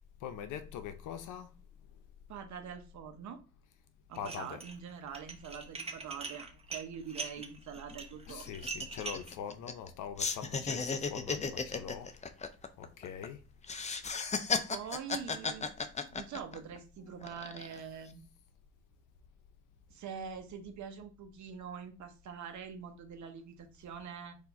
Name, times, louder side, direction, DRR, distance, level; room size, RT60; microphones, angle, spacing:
voice 1, 0.2-2.0 4.2-4.6 8.3-12.2 12.8-13.4, left 8 dB, 85° left, 0.7 m, -43 dB
voice 2, 2.3-3.4 4.1-8.5 14.7-15.7 16.1-18.3 19.9-24.4, right 7 dB, 70° right, 1.0 m, -44 dB
Dishes pots and pans, 4.1-4.8 5.1-9.3, right 4 dB, 20° right, 0.8 m, -42 dB
sound 1, 7.4-7.5 7.8-7.9 8.3-9.9 10.2-13.3 13.6-16.8 17.2-17.8, left 5 dB, 25° left, 0.5 m, -35 dB
4.4 x 2.7 x 4.1 m
cardioid pair, 90°, 30 cm